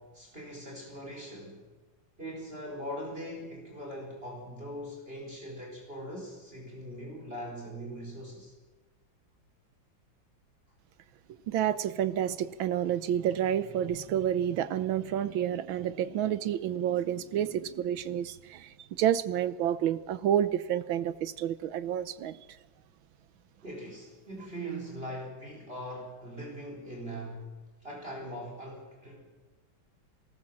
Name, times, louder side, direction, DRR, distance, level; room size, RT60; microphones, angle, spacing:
voice 1, 0.0-1.6 2.2-8.5 23.6-27.5 27.8-29.3, equal, 30° right, -1 dB, 4.8 m, -41 dB
voice 2, 11.5-22.4, right 10 dB, 80° right, 15 dB, 1.7 m, -29 dB
22.5 x 19.0 x 7.5 m, 1.2 s
omnidirectional pair, 2.1 m